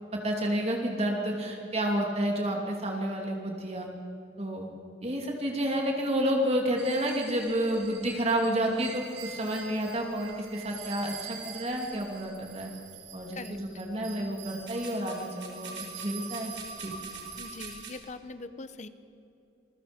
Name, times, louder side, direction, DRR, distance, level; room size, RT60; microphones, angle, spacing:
voice 1, 0.1-3.9 4.4-4.7 5.0-12.7 13.1-16.5 16.8-16.9, right 1 dB, 35° right, 1 dB, 2.6 m, -30 dB
sound 1, 6.8-18.0, right 5 dB, 75° right, 4.9 m, -44 dB
voice 2, 17.4-18.9, left 3 dB, 40° left, 12 dB, 1.0 m, -42 dB
28.0 x 22.0 x 5.2 m, 2.9 s
head